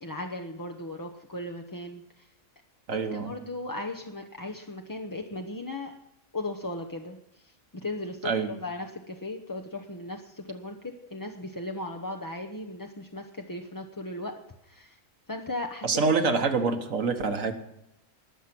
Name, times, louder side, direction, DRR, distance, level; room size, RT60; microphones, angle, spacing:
voice 1, 0.0-2.3 2.9-5.9 6.3-7.4 7.7-14.3 14.6-15.0 15.3-16.0, left 2 dB, 20° left, 3 dB, 0.7 m, -37 dB
voice 2, 2.9-3.3 8.2-8.5 15.8-17.5, right 4 dB, 65° right, 7 dB, 1.7 m, -26 dB
19.5 x 7.4 x 6.0 m, 0.85 s
omnidirectional pair, 1.5 m